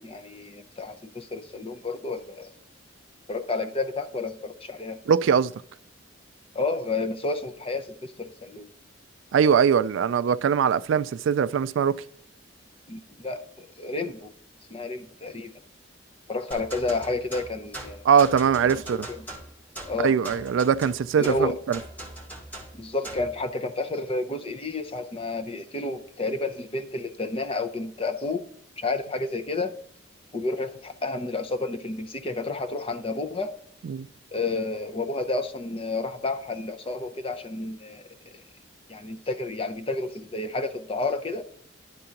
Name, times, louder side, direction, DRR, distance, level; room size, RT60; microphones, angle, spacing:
voice 1, 0.0-2.5 3.3-5.0 6.5-8.7 12.9-14.3 14.7-15.5 16.3-18.0 18.6-19.2 19.9-20.2 21.2-21.6 22.7-28.4 28.8-29.8 30.3-33.6 34.3-38.4 38.9-41.4, left 3 dB, 30° left, 0.7 m, -31 dB
voice 2, 5.1-5.5 9.3-12.0 18.0-19.1 20.0-21.8 33.8-34.1, right 7 dB, 75° right, 0.3 m, -21 dB
sound 1, 16.5-23.3, right 1 dB, 10° left, 1.8 m, -40 dB
11.0 x 3.8 x 5.7 m
head